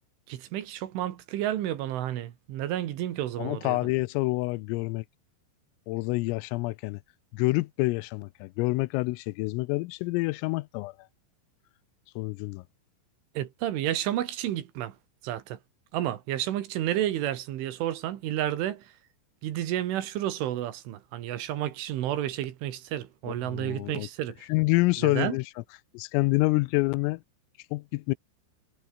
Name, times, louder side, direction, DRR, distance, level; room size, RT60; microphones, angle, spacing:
voice 1, 0.3-3.8 13.4-15.0 15.2-15.6 15.9-18.9 19.4-24.5 25.0-25.4, right 12 dB, 75° right, 4.1 m, -31 dB
voice 2, 3.4-5.0 5.9-7.0 7.3-10.9 12.2-12.6 23.3-24.1 24.5-25.4 25.9-27.2 27.7-28.2, left 22 dB, 85° left, 3.3 m, -27 dB
omnidirectional pair, 5.9 m